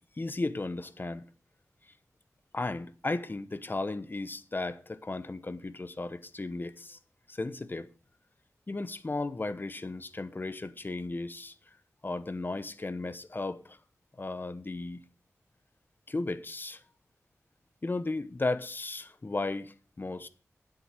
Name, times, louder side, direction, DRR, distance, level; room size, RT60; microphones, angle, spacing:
voice 1, 0.2-1.2 2.5-7.0 7.3-7.9 8.7-11.5 12.0-13.8 14.2-15.0 16.1-16.8 17.8-20.3, left 2 dB, 35° left, 1.0 m, -35 dB
10.0 x 8.0 x 6.4 m
wide cardioid pair, 65°, 6 cm